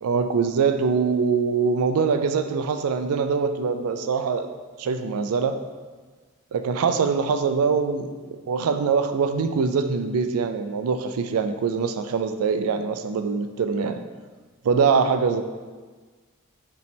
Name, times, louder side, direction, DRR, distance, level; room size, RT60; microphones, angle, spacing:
voice 1, 0.0-4.5 4.8-5.6 6.5-8.1 8.5-14.0 14.6-15.4, right 5 dB, 90° right, 8 dB, 0.4 m, -23 dB
5.0 x 3.1 x 3.3 m, 1.4 s
head